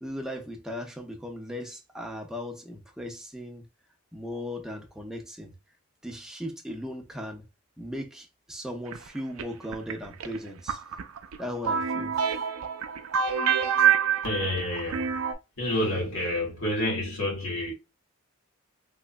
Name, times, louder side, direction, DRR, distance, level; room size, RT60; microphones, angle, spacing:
voice 1, 0.0-3.6 4.1-5.5 6.0-7.4 7.8-10.8 11.4-12.1, equal, ahead, 0.6 m, -37 dB
sound 1, 8.9-15.3, right 8 dB, 70° right, 0.5 m, -26 dB
voice 2, 14.2-15.2 15.6-17.7, left 1 dB, 65° left, 2.1 m, -29 dB
3.5 x 3.0 x 2.2 m
head